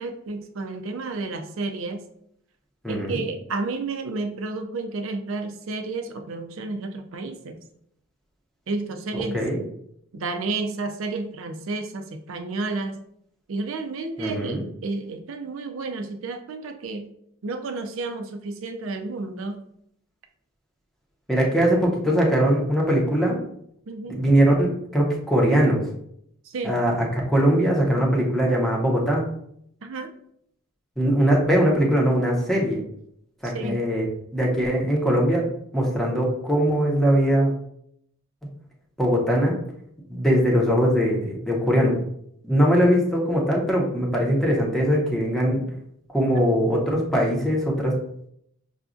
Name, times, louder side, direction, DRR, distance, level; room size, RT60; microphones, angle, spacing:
voice 1, 0.0-2.0 2.9-7.6 8.7-9.4 10.1-13.0 13.5-17.1 17.4-19.6 23.9-24.3 26.4-26.8 29.8-30.1 33.4-33.8 46.4-46.5, right 3 dB, 75° right, 6 dB, 0.4 m, -31 dB
voice 2, 2.8-3.2 9.3-9.6 14.2-14.6 21.3-23.4 24.1-25.8 26.6-29.2 31.0-32.8 33.4-34.0 34.3-35.5 35.7-37.5 39.0-39.5 40.1-41.9 42.4-45.6 46.1-47.9, equal, ahead, -3 dB, 0.7 m, -21 dB
5.8 x 2.3 x 2.5 m, 0.71 s
head